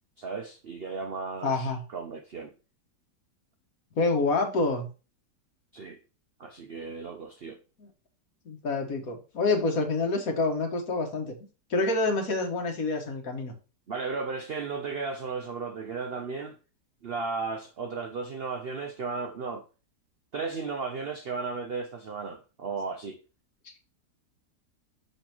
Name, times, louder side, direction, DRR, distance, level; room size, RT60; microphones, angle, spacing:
voice 1, 0.2-2.5 5.7-6.0 6.4-7.6 13.9-16.6 17.0-19.6 20.3-23.2, right 4 dB, 60° right, 0.6 m, -35 dB
voice 2, 1.4-1.8 4.0-4.9 7.8-7.9 8.4-11.4 11.7-13.5, left 3 dB, 55° left, 1.6 m, -27 dB
6.6 x 5.6 x 2.9 m
omnidirectional pair, 1.8 m